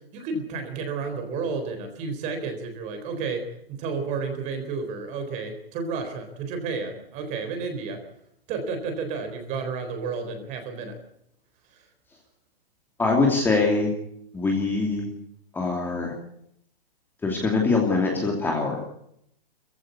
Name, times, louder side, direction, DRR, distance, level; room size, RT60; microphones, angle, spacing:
voice 1, 0.1-3.5 3.8-8.0 8.5-10.9, right 4 dB, 25° right, 6 dB, 3.9 m, -31 dB
voice 2, 13.0-13.9 14.3-15.1 15.5-16.1 17.2-18.8, left 3 dB, 5° left, 0 dB, 2.7 m, -23 dB
22.5 x 15.5 x 8.4 m, 0.74 s
hypercardioid pair, 160°, 29 cm